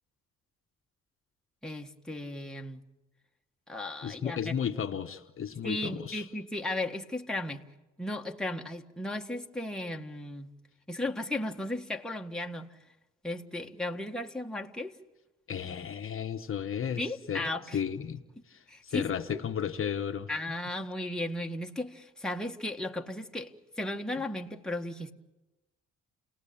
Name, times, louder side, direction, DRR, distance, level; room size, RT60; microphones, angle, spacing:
voice 1, 1.6-2.8 3.7-4.5 5.6-7.7 8.0-10.5 10.9-12.8 13.2-15.0 17.0-17.8 18.7-19.4 20.3-25.1, left 1 dB, ahead, 1.7 m, -35 dB
voice 2, 4.0-6.2 15.5-17.0 17.3-18.2 18.5-20.3, left 8 dB, 45° left, 1.2 m, -34 dB
30.0 x 18.5 x 8.7 m
cardioid pair, 90°, 30 cm